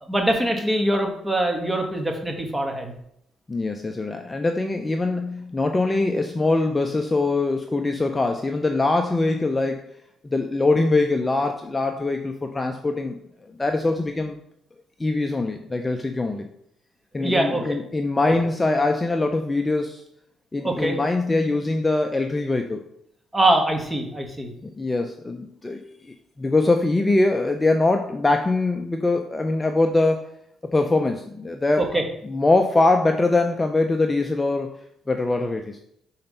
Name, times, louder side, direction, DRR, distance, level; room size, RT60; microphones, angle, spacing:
voice 1, 0.1-2.9 17.2-17.6 20.6-21.0 23.3-24.5 31.9-32.0, right 1 dB, 10° right, 2 dB, 1.5 m, -23 dB
voice 2, 3.5-9.8 10.2-13.2 13.4-14.4 15.0-16.5 17.1-20.0 20.5-22.8 24.6-30.3 30.7-31.9 32.2-34.8 35.1-35.8, left 2 dB, 20° left, 5 dB, 0.6 m, -23 dB
5.8 x 4.4 x 5.5 m, 0.74 s
cardioid pair, 90°, 0 cm